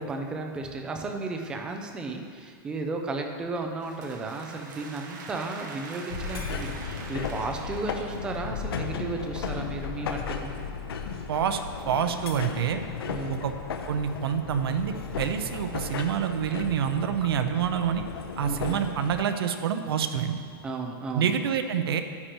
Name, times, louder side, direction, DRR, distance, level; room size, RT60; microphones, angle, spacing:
voice 1, 0.0-10.5 13.1-13.4 18.5-18.8 20.6-21.3, right 3 dB, 5° right, 3 dB, 0.4 m, -34 dB
sound 1, 3.5-8.7, right 4 dB, 55° right, 1.1 m, -44 dB
sound 2, 6.1-19.2, left 6 dB, 85° left, 0.8 m, -35 dB
voice 2, 11.3-11.6 11.9-12.8 13.3-13.6 13.9-18.0 18.4-20.4 21.1-22.0, right 8 dB, 80° right, 8 dB, 0.7 m, -27 dB
9.9 x 9.7 x 3.0 m, 2.2 s
supercardioid pair, 175°, 12 cm